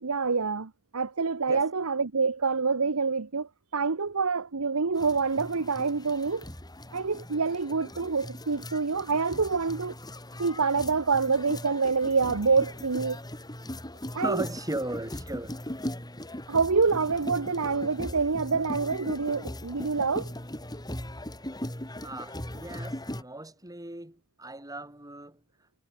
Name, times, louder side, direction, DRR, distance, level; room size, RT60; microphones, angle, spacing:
voice 1, 0.0-6.4 6.9-9.9 10.4-13.2 14.1-14.4 16.5-20.3, right 4 dB, 80° right, 1.0 m, -26 dB
sound 1, 4.9-23.2, left 1 dB, 20° left, 5.0 m, -39 dB
voice 2, 14.2-15.6 22.0-25.4, right 1 dB, 15° right, 5.7 m, -37 dB
head